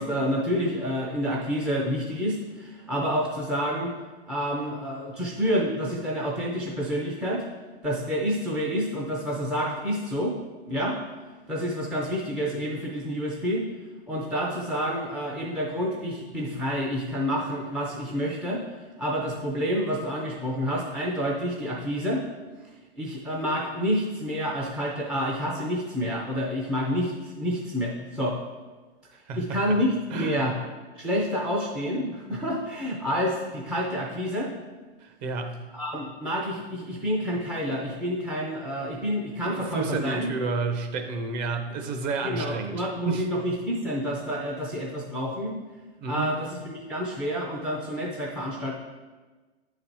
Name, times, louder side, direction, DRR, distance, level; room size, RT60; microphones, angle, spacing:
voice 1, 0.0-3.9 4.3-7.4 7.8-10.4 10.7-11.0 11.5-13.6 14.1-18.6 19.0-22.2 23.0-28.4 29.4-30.6 31.0-34.5 35.7-40.3 42.2-45.5 46.1-48.7, equal, 5° right, -3 dB, 0.3 m, -28 dB
voice 2, 29.3-29.8 30.1-30.4 35.0-35.7 39.4-43.3 46.0-46.3, right 4 dB, 45° right, 6 dB, 0.9 m, -31 dB
8.5 x 4.0 x 4.5 m, 1.3 s
hypercardioid pair, 130°, 32 cm